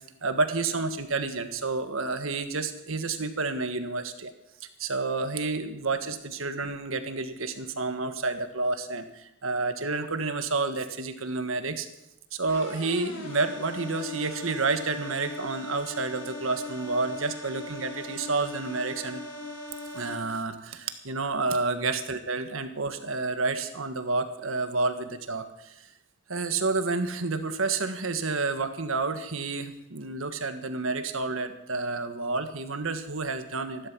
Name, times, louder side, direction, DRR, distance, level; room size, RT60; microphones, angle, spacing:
voice 1, 0.2-4.3 4.6-11.9 12.3-19.2 19.9-25.7 26.3-33.9, right 3 dB, 75° right, 8 dB, 1.5 m, -30 dB
sound 1, 12.5-20.1, left 2 dB, 70° left, 6.7 m, -40 dB
15.0 x 12.0 x 6.2 m, 0.88 s
head